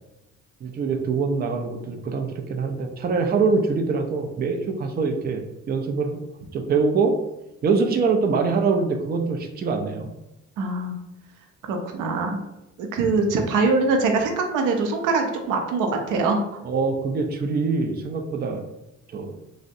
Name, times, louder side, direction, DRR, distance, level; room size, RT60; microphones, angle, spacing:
voice 1, 0.6-6.2 6.5-7.1 7.6-10.1 16.6-18.6 19.1-19.3, right 4 dB, 30° right, 3 dB, 0.4 m, -24 dB
voice 2, 10.6-10.9 11.6-12.4 12.8-16.4, right 3 dB, 90° right, 4 dB, 0.5 m, -23 dB
3.5 x 2.1 x 2.6 m, 0.91 s
cardioid pair, 90°, 30 cm